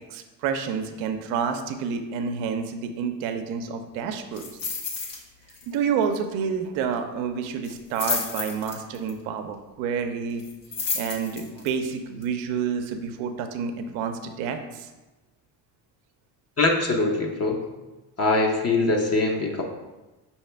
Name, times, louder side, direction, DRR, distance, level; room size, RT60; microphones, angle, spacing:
voice 1, 0.1-4.5 5.7-10.4 10.9-14.9, right 6 dB, 75° right, 7 dB, 0.6 m, -29 dB
sound 1, 4.3-5.2 5.5-5.8 6.0-6.1 7.6-9.1 10.4-11.7 12.2-12.3, left 4 dB, 55° left, 1.3 m, -31 dB
voice 2, 16.6-17.6 18.2-19.6, left 2 dB, 30° left, 1 dB, 0.8 m, -22 dB
5.5 x 2.8 x 3.3 m, 1.1 s
hypercardioid pair, 65°, 47 cm